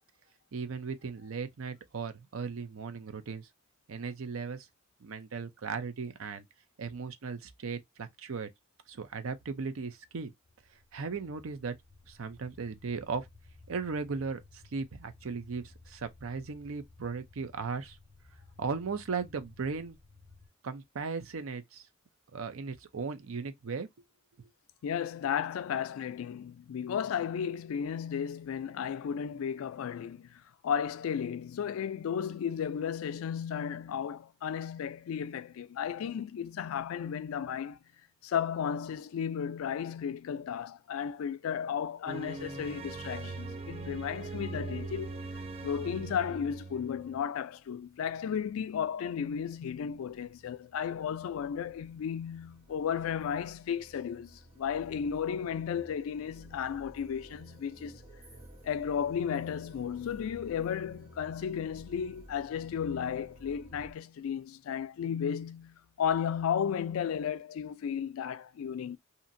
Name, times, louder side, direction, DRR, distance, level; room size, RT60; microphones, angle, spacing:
voice 1, 0.5-3.5 3.9-4.7 5.0-6.4 6.8-8.5 8.9-10.3 10.9-11.7 12.1-13.3 13.7-18.0 18.6-20.0 20.6-21.9 22.3-23.9 24.4-24.5, right 5 dB, 80° right, 0.6 m, -37 dB
sound 1, 10.4-20.5, left 3 dB, 10° right, 1.3 m, -57 dB
voice 2, 24.8-37.8 38.2-45.2 45.6-58.0 58.6-69.0, left 8 dB, 85° left, 0.3 m, -34 dB
sound 2, 42.1-47.2, right 3 dB, 30° right, 0.4 m, -40 dB
sound 3, 47.6-63.9, right 1 dB, 50° right, 1.1 m, -55 dB
2.8 x 2.5 x 2.6 m
head